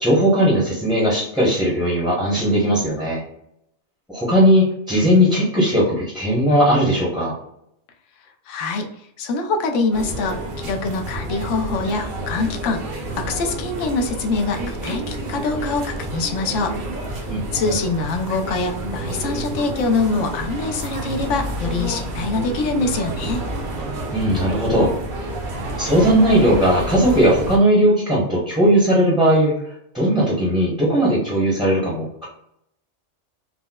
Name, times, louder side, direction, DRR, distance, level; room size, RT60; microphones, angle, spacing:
voice 1, 0.0-3.2 4.1-7.4 17.3-17.8 24.1-24.9 25.8-29.6 29.9-32.3, equal, ahead, -6 dB, 0.7 m, -18 dB
voice 2, 8.5-8.9 9.2-23.4, left 3 dB, 75° left, 4 dB, 0.9 m, -24 dB
sound 1, 9.9-27.6, right 1 dB, 50° right, 0.7 m, -29 dB
4.2 x 2.0 x 2.2 m, 0.77 s
omnidirectional pair, 1.3 m